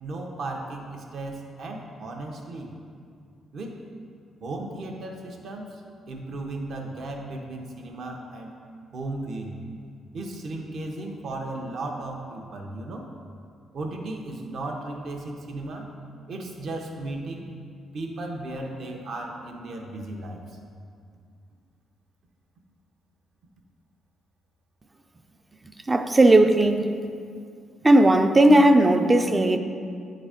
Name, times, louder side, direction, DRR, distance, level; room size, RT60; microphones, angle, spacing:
voice 1, 0.0-2.7 3.5-3.8 4.4-5.8 6.1-8.5 8.9-9.6 10.1-13.1 13.7-15.9 16.3-17.5 17.9-20.6, right 2 dB, 55° right, 1 dB, 0.9 m, -35 dB
voice 2, 25.9-26.9 27.8-29.6, right 1 dB, 15° right, 7 dB, 0.4 m, -17 dB
8.9 x 4.0 x 5.0 m, 2.3 s
cardioid pair, 135°, 0 cm